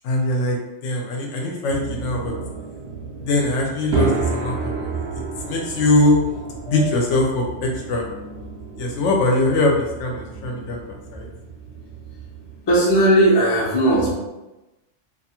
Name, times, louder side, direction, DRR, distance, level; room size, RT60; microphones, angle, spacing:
voice 1, 0.0-0.6 0.8-2.3 3.2-5.0 5.4-6.2 6.7-8.0 8.8-10.8 11.1-11.3, left 2 dB, 75° left, 0 dB, 0.9 m, -21 dB
sound 1, 1.7-12.6, right 3 dB, 60° right, 0.7 m, -31 dB
voice 2, 12.7-14.1, right 1 dB, 30° left, -4 dB, 0.5 m, -17 dB
2.5 x 2.3 x 2.8 m, 1.0 s
omnidirectional pair, 1.3 m